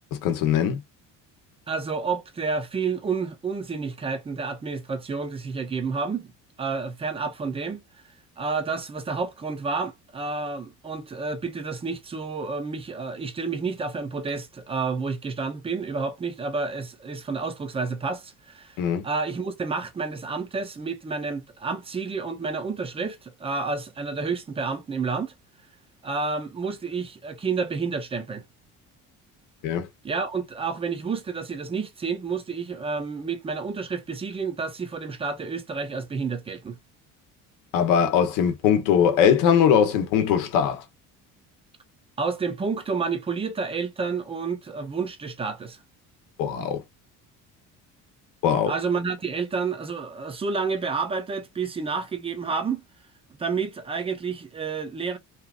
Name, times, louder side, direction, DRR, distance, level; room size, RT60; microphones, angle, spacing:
voice 1, 0.2-0.8 18.8-19.0 29.6-29.9 37.7-40.8 46.4-46.8 48.4-48.7, left 8 dB, 85° left, 0.8 m, -21 dB
voice 2, 1.7-6.3 6.6-7.8 8.4-25.3 26.0-28.4 30.0-36.8 42.2-45.8 48.7-52.8 53.4-55.2, right 4 dB, 20° right, 0.5 m, -30 dB
2.8 x 2.4 x 2.3 m
cardioid pair, 145°, 32 cm